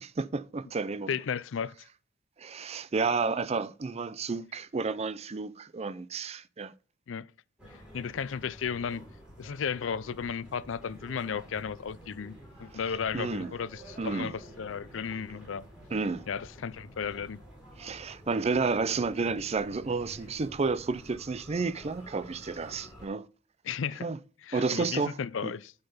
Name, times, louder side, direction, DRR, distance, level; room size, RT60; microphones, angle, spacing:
voice 1, 0.0-1.1 2.4-6.7 13.1-13.5 14.0-14.3 15.9-16.2 17.8-23.3 24.0-24.2 24.5-25.2 25.4-25.5, right 4 dB, 35° right, 0.5 m, -31 dB
voice 2, 1.1-1.7 7.1-7.3 7.9-9.0 9.4-12.3 12.6-15.7 16.3-17.4 23.6-24.1 24.4-25.7, left 6 dB, 85° left, 0.5 m, -34 dB
sound 1, 7.6-23.1, equal, 5° right, 5.3 m, -50 dB
8.8 x 5.6 x 5.6 m
head